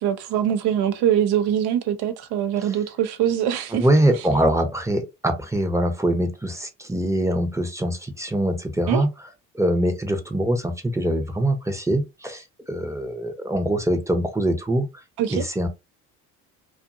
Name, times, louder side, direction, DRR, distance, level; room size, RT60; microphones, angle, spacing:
voice 1, 0.0-3.8 8.9-9.0 15.2-15.4, right 10 dB, 70° right, 0.7 m, -23 dB
voice 2, 3.7-9.1 9.5-14.9 15.3-15.7, right 1 dB, 5° right, 0.7 m, -23 dB
2.5 x 2.4 x 2.6 m
supercardioid pair, 65°, 42 cm